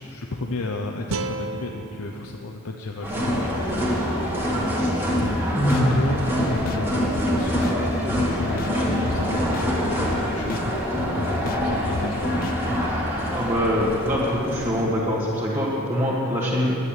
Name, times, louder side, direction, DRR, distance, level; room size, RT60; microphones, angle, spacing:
voice 1, 0.0-4.3 5.1-6.2 6.5-7.6 8.1-12.6 13.2-13.4, left 2 dB, 85° left, 2 dB, 0.7 m, -33 dB
sound 1, 1.1-4.2, right 3 dB, 65° right, 0.6 m, -35 dB
sound 2, 3.0-14.8, equal, 10° right, 1.8 m, -25 dB
sound 3, 5.2-5.4 5.7-5.8 6.2-6.3 6.7-6.8 7.1-7.3 7.6-7.8 8.1-8.2 8.6-8.7 9.1-9.2 9.5-9.7 10.0-10.2 10.5-10.6 11.0-11.1 11.5-11.6 11.9-12.1 12.4-12.6, left 5 dB, 40° left, 0.3 m, -34 dB
voice 2, 5.5-6.0 13.3-16.8, equal, 25° right, -7 dB, 1.8 m, -23 dB
10.0 x 9.6 x 8.9 m, 2.7 s
head